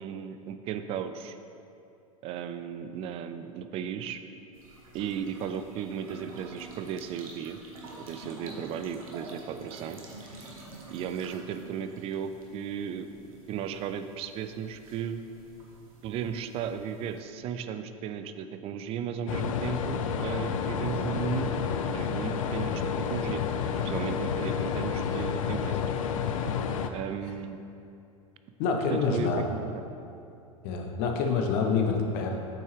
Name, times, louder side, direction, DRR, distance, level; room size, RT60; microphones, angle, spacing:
voice 1, 0.0-1.4 2.2-4.2 4.9-7.6 8.0-10.0 10.9-13.1 13.5-15.2 16.0-23.4 23.8-25.8 26.9-27.6 28.9-29.8, right 8 dB, 35° right, 9 dB, 0.4 m, -35 dB
sound 1, 4.5-17.2, right 2 dB, 70° right, 1.1 m, -49 dB
sound 2, 19.3-26.9, left 7 dB, 65° left, 0.5 m, -30 dB
voice 2, 28.6-29.4 30.6-32.4, left 5 dB, 50° left, 2 dB, 0.9 m, -27 dB
7.9 x 4.5 x 3.2 m, 2.6 s
hypercardioid pair, 95°, 18 cm